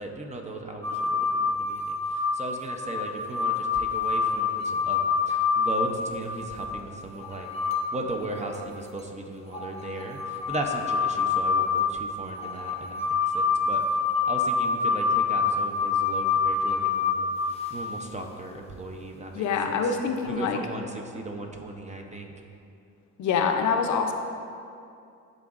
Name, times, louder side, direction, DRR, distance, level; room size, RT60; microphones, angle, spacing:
voice 1, 0.0-7.5 7.9-13.8 14.3-20.0 20.2-22.3, right 2 dB, 25° right, 3 dB, 0.6 m, -37 dB
sound 1, 0.8-6.7 7.2-8.0 8.3-8.4 9.5-18.0 20.1-20.2, left 5 dB, 20° left, 0.7 m, -26 dB
voice 2, 19.3-20.6 23.2-24.1, left 5 dB, 70° left, 5 dB, 0.6 m, -25 dB
10.5 x 3.9 x 2.4 m, 2.5 s
cardioid pair, 90°, 30 cm